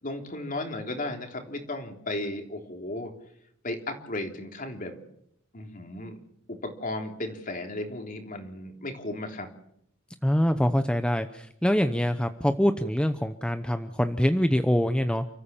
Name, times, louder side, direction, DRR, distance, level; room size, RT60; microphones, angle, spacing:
voice 1, 0.0-3.1 3.6-5.0 5.5-6.2 6.5-9.5, left 2 dB, 45° left, 4 dB, 3.5 m, -35 dB
voice 2, 10.2-15.2, equal, 5° left, 8 dB, 0.8 m, -24 dB
30.0 x 14.5 x 7.3 m, 0.73 s
head